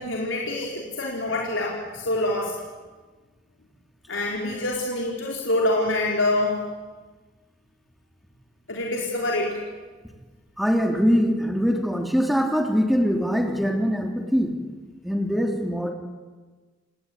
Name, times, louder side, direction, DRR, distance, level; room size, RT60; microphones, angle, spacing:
voice 1, 0.0-2.5 4.1-6.6 8.7-9.6, left 2 dB, 90° left, -2 dB, 4.2 m, -26 dB
voice 2, 10.6-14.5 15.0-15.9, equal, ahead, 3 dB, 3.3 m, -22 dB
29.5 x 18.0 x 9.9 m, 1.3 s
head